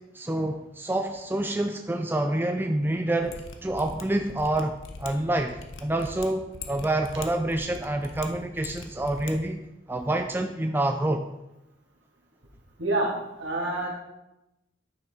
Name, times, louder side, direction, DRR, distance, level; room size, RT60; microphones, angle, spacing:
voice 1, 0.1-11.2, right 1 dB, 10° right, 5 dB, 0.4 m, -27 dB
Mechanisms, 3.2-9.3 9.6-9.7, left 3 dB, 90° left, 0.9 m, -42 dB
voice 2, 12.8-13.9, right 2 dB, 65° right, -2 dB, 2.3 m, -27 dB
9.8 x 5.9 x 4.3 m, 0.92 s
head